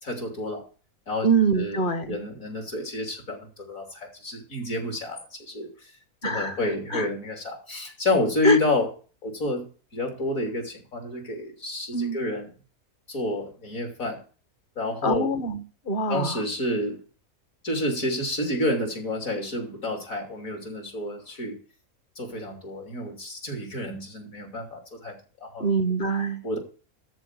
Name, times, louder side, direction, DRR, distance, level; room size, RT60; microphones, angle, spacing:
voice 1, 0.0-0.6 1.1-1.3 1.6-5.9 6.2-8.9 9.2-9.6 9.9-12.5 13.1-14.2 14.8-15.3 16.1-17.0 17.6-21.6 22.2-25.2 25.4-25.7 26.4-26.6, left 1 dB, 65° left, 3 dB, 3.6 m, -29 dB
voice 2, 1.2-2.2 6.2-6.6 6.9-7.1 8.4-8.6 11.9-12.2 15.0-16.4 25.6-26.4, right 2 dB, 40° left, 11 dB, 1.2 m, -24 dB
13.5 x 4.5 x 8.3 m, 0.38 s
omnidirectional pair, 1.5 m